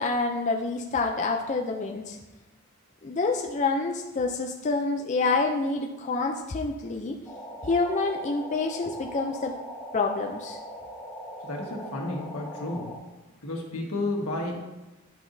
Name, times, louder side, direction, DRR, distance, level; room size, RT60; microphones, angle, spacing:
voice 1, 0.0-2.2 3.0-7.2 7.6-9.6 9.9-10.6, left 3 dB, 35° left, 2 dB, 0.4 m, -27 dB
sound 1, 7.3-13.0, equal, 15° left, 1.3 m, -40 dB
voice 2, 11.4-13.0 13.4-14.5, left 2 dB, 85° left, 0 dB, 1.5 m, -32 dB
10.5 x 5.7 x 2.7 m, 1.1 s
head